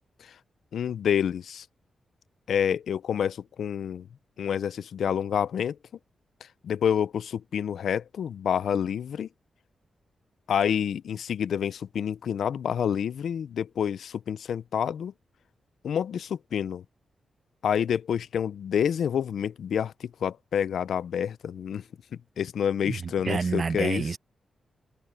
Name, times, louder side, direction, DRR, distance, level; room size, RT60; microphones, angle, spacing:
voice 1, 0.7-1.7 2.5-4.1 4.4-5.8 6.6-9.3 10.5-15.1 15.8-16.8 17.6-21.8 22.4-24.1, left 8 dB, 85° left, 0.5 m, -28 dB
voice 2, 22.8-24.2, right 5 dB, 40° right, 0.8 m, -29 dB
open air
wide cardioid pair, 150°, 0 cm